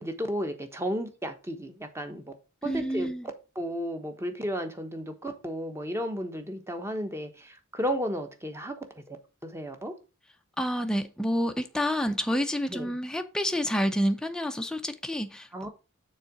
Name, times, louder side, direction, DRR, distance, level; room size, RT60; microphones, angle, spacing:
voice 1, 0.0-2.3 2.6-3.1 3.5-8.8 9.1-9.2 9.4-9.9 12.7-12.9 15.5-15.7, equal, 10° right, 1.1 m, -33 dB
voice 2, 2.6-3.3 10.6-15.7, equal, 5° left, 0.6 m, -29 dB
6.7 x 3.9 x 5.8 m
head